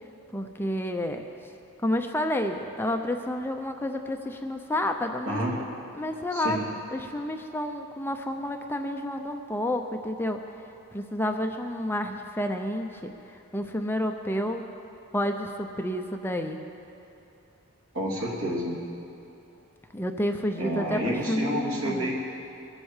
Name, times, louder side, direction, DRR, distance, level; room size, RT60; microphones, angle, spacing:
voice 1, 0.3-1.2 1.8-5.6 6.0-6.6 6.9-10.4 10.9-14.7 15.1-16.6 19.9-22.1, left 1 dB, 10° left, 4 dB, 0.6 m, -30 dB
voice 2, 17.9-18.8 20.6-22.1, equal, 70° right, -3 dB, 3.1 m, -29 dB
22.0 x 8.1 x 7.3 m, 2.9 s
head